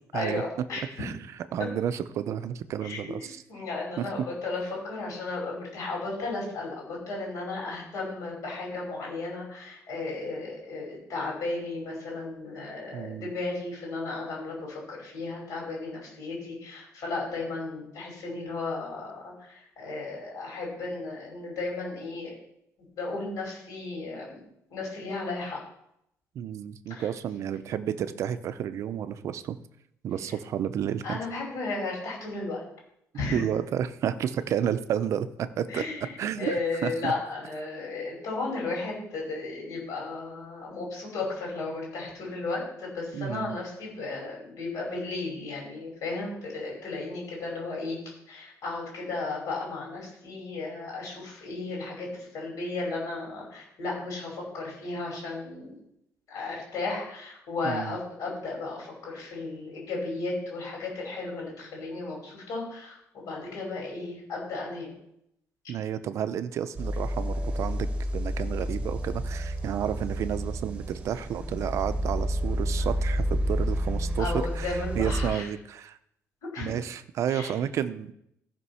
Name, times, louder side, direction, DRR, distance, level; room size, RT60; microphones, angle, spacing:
voice 1, 0.1-0.8 2.8-22.3 23.0-24.4 24.7-25.6 26.9-27.1 31.0-32.6 33.1-33.4 35.7-55.8 56.3-64.9 74.2-75.5 76.4-76.7 77.3-77.5, left 3 dB, 65° left, -2 dB, 5.3 m, -34 dB
voice 2, 1.5-3.4 4.0-4.1 12.9-13.3 26.3-29.6 30.0-31.2 33.3-35.8 36.2-36.6 36.8-37.1 43.1-43.5 57.6-58.0 65.7-67.9 68.1-76.0 76.6-78.1, right 9 dB, 55° right, 12 dB, 0.6 m, -31 dB
sound 1, 66.8-75.3, equal, 20° right, 1.1 m, -30 dB
14.5 x 5.2 x 5.6 m, 0.76 s
cardioid pair, 175°, 6 cm